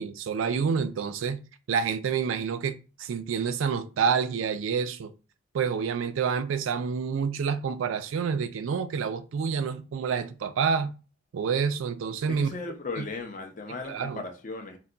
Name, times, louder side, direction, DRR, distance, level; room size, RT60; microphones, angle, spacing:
voice 1, 0.0-1.4 1.7-5.1 5.5-10.9 11.3-12.5 13.0-13.1 13.9-14.2, right 6 dB, 75° right, 0.3 m, -28 dB
voice 2, 12.3-14.8, left 3 dB, 40° left, 0.5 m, -36 dB
2.2 x 2.2 x 3.7 m
head